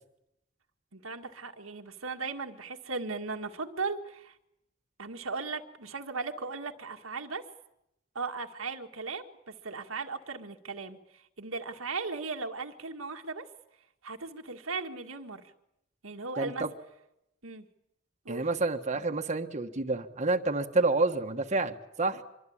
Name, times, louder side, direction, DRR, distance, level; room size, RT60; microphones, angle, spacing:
voice 1, 0.9-4.3 5.0-7.4 8.2-11.0 11.4-13.5 14.0-15.4 16.0-16.6 17.4-17.7 18.3-18.5, right 4 dB, 85° right, 4 dB, 1.9 m, -37 dB
voice 2, 16.4-16.7 18.3-22.2, right 3 dB, 35° right, 4 dB, 1.4 m, -29 dB
25.0 x 24.0 x 8.8 m, 0.85 s
head